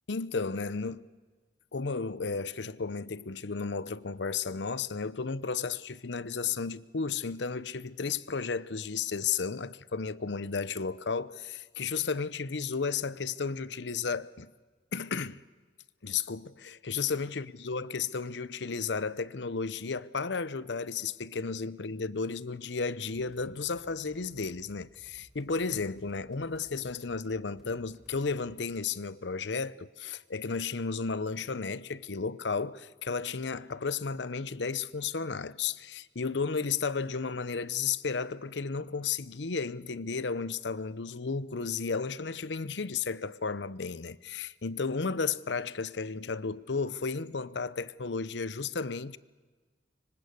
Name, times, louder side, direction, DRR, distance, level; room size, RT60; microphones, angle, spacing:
voice 1, 0.1-1.0 1.7-14.5 14.9-15.4 16.0-49.2, left 5 dB, 75° left, 0.8 m, -33 dB
sound 1, 23.1-28.6, equal, ahead, 4.2 m, -60 dB
25.0 x 25.0 x 8.1 m
head